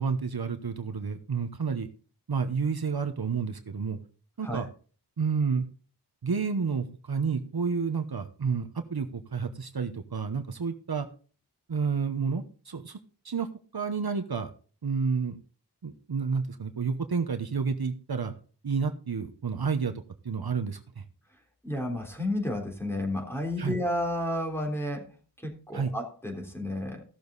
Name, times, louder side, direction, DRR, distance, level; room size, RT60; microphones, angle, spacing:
voice 1, 0.0-1.9 2.3-4.0 4.4-4.6 5.2-5.7 6.2-11.1 11.7-13.0 13.2-13.5 13.7-14.5 14.8-15.4 15.8-18.3 18.6-19.9 20.2-21.0 23.6-23.8 25.7-25.9, right 5 dB, 65° right, 7 dB, 1.0 m, -30 dB
voice 2, 21.6-25.1 25.4-27.0, left 1 dB, 5° left, 1 dB, 3.6 m, -31 dB
15.5 x 7.0 x 4.1 m, 0.39 s
wide cardioid pair, 55°, 41 cm